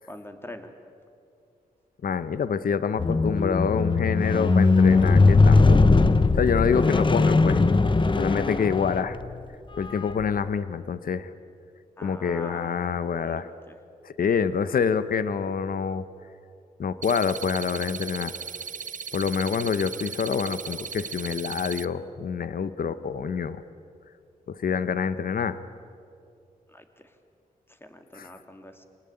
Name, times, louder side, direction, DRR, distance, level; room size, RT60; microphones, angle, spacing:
voice 1, 0.1-0.7 12.0-13.4 13.7-13.8 26.7-26.8 27.8-28.8, left 1 dB, 15° left, 6 dB, 2.8 m, -43 dB
voice 2, 2.0-5.9 6.3-7.6 8.1-9.2 9.8-11.3 12.0-13.5 14.0-16.0 16.8-18.3 19.1-23.6 24.5-25.6 28.1-28.3, left 6 dB, 70° left, 13 dB, 1.0 m, -26 dB
Squeak, 3.0-9.3 10.1-10.2, left 3 dB, 30° left, 1.0 m, -19 dB
sound 1, 17.0-21.8, right 6 dB, 60° right, 0.8 m, -37 dB
26.5 x 19.5 x 9.1 m, 2.4 s
cardioid pair, 70°, 16 cm